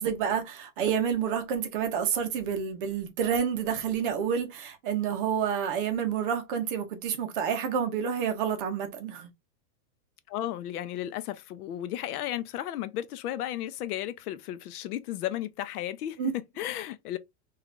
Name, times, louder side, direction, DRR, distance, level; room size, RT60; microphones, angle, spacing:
voice 1, 0.0-9.3 16.2-16.3, right 7 dB, 35° right, 0.5 m, -29 dB
voice 2, 10.3-17.2, left 12 dB, 75° left, 0.6 m, -34 dB
3.2 x 2.4 x 2.4 m
supercardioid pair, 170°, 45 cm